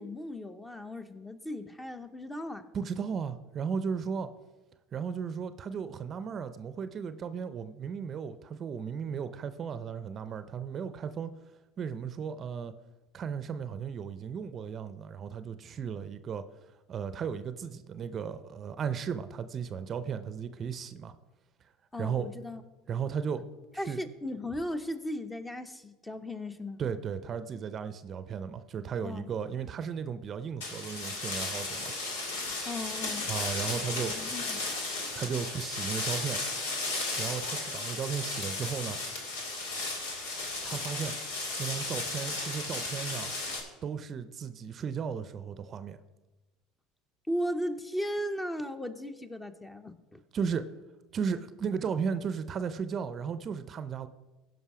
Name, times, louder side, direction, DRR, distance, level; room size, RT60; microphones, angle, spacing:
voice 1, 0.0-2.6 21.9-22.6 23.8-26.8 29.0-29.3 32.7-33.3 34.1-34.6 47.3-50.2, left 1 dB, 10° left, 9 dB, 0.8 m, -36 dB
voice 2, 2.7-4.3 4.9-11.3 11.8-12.7 13.1-16.4 16.9-21.1 22.0-22.3 22.9-23.4 23.9-24.0 26.8-31.9 33.3-34.2 35.1-36.4 37.2-39.0 40.6-41.1 41.6-43.3 43.8-46.0 50.3-50.7 51.1-54.1, right 7 dB, 40° right, 12 dB, 0.6 m, -35 dB
sound 1, 30.6-43.6, left 2 dB, 85° left, 1.8 m, -35 dB
15.5 x 5.4 x 4.9 m, 1.1 s
hypercardioid pair, 90°, 0 cm